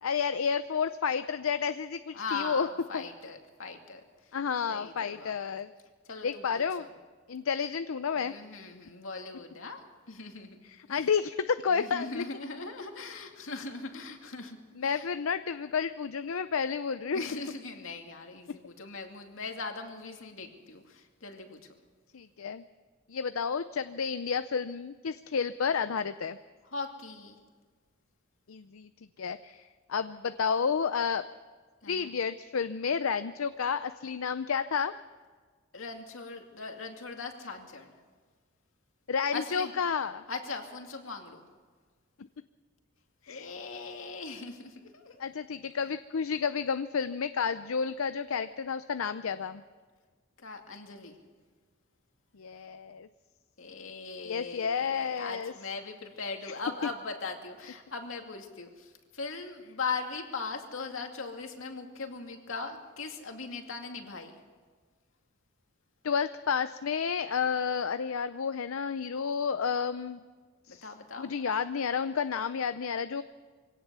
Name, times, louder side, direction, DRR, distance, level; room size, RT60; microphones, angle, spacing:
voice 1, 0.0-2.7 2.9-3.1 4.3-5.7 6.2-6.9 7.3-8.3 10.6-12.2 14.8-17.2 22.1-22.6 23.1-26.4 28.5-28.9 29.2-29.6 29.9-31.3 31.9-34.9 39.1-40.2 43.2-43.5 45.2-49.6 52.4-53.1 54.2-55.5 56.4-56.5 66.0-70.2 70.7-70.9 71.2-73.2, left 6 dB, 90° left, 11 dB, 0.6 m, -31 dB
voice 2, 2.1-4.0 4.7-5.3 6.1-6.9 8.2-10.6 10.9-11.1 11.7-14.6 14.8-15.1 17.1-21.6 26.7-27.4 31.8-32.1 35.7-37.9 39.3-39.7 40.3-41.4 43.3-45.2 50.4-51.2 53.6-64.3 70.7-71.3, left 4 dB, 70° left, 4 dB, 2.4 m, -40 dB
23.0 x 17.5 x 6.9 m, 1.5 s
head